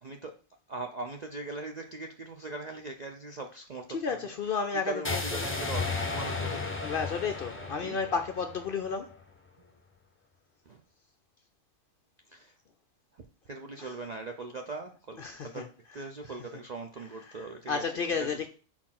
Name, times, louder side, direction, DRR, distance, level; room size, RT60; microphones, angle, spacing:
voice 1, 0.0-0.3 0.7-4.3 4.8-6.7 7.6-8.0 9.6-9.7 10.7-10.8 12.3-12.5 13.5-15.2 15.4-15.6 15.9-17.8 18.2-18.5, right 3 dB, 55° right, 0.4 m, -40 dB
voice 2, 3.9-5.5 6.8-9.2 13.8-13.9 15.2-15.7 16.0-16.1 17.3-18.5, left 5 dB, 60° left, 0.6 m, -32 dB
sound 1, 5.0-9.1, left 3 dB, 15° left, 0.6 m, -34 dB
4.4 x 4.4 x 5.8 m
omnidirectional pair, 1.4 m